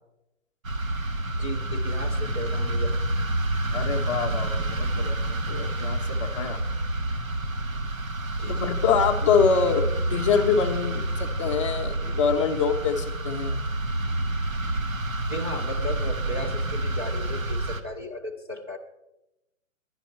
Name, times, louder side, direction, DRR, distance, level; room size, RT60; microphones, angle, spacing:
sound 1, 0.6-17.8, right 1 dB, 80° right, 1.1 m, -28 dB
voice 1, 1.4-3.4 8.4-8.6 14.0-14.1 15.3-18.8, equal, 20° right, -3 dB, 0.4 m, -36 dB
voice 2, 3.7-6.6 8.5-13.6, left 6 dB, 25° left, 3 dB, 0.6 m, -25 dB
11.0 x 10.5 x 4.3 m, 0.92 s
figure-of-eight pair, 130°, 40 cm